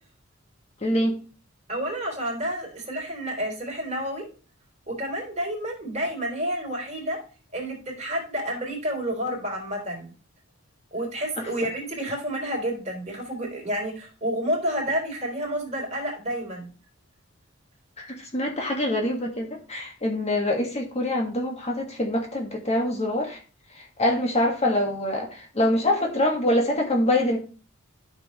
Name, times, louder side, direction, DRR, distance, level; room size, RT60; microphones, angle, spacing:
voice 1, 0.8-1.2 11.4-11.5 18.0-23.4 23.8-27.4, left 1 dB, 30° left, 2 dB, 1.9 m, -25 dB
voice 2, 1.7-4.3 4.9-7.2 7.5-10.1 10.9-16.7, right 1 dB, 35° right, 0 dB, 3.8 m, -30 dB
12.5 x 6.7 x 3.2 m, 0.36 s
head